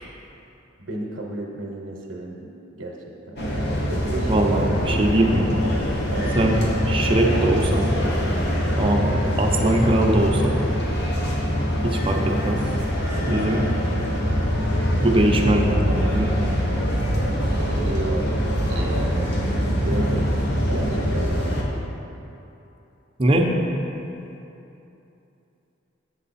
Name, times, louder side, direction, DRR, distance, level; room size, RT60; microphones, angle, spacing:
voice 1, 0.8-3.4 3.9-5.0 6.1-6.4 17.5-18.4 18.7-19.3 19.8-20.3 20.6-21.9, right 2 dB, 90° right, -1 dB, 0.9 m, -33 dB
sound 1, 3.4-21.6, equal, 60° left, 1.2 m, -24 dB
voice 2, 4.3-5.5 6.3-6.6 6.9-8.0 8.8-10.7 11.8-12.6 13.3-13.6 15.0-16.4 23.2-23.5, right 1 dB, 30° right, 1 dB, 0.7 m, -21 dB
7.7 x 7.6 x 4.2 m, 2.8 s
head